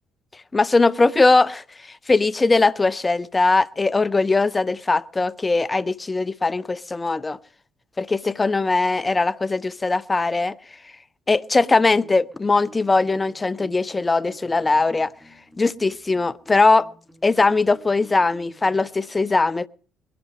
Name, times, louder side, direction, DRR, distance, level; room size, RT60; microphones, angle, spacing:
voice 1, 0.5-7.4 8.0-10.6 11.3-15.1 15.6-16.9 17.2-19.7, left 3 dB, 25° left, 0.6 m, -20 dB
sound 1, 11.7-18.9, right 2 dB, ahead, 4.0 m, -51 dB
21.0 x 11.0 x 4.7 m
hypercardioid pair, 55°, 0 cm